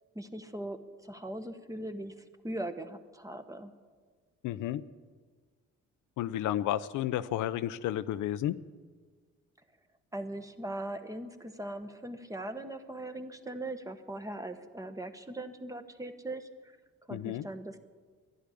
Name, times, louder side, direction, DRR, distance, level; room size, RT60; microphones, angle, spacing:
voice 1, 0.1-3.7 10.1-16.7 17.1-17.8, right 1 dB, 10° right, 8 dB, 1.2 m, -40 dB
voice 2, 4.4-4.8 6.2-8.6 17.1-17.5, left 12 dB, 85° left, 13 dB, 0.6 m, -32 dB
11.5 x 10.5 x 10.0 m, 1.5 s
cardioid pair, 90°, 30 cm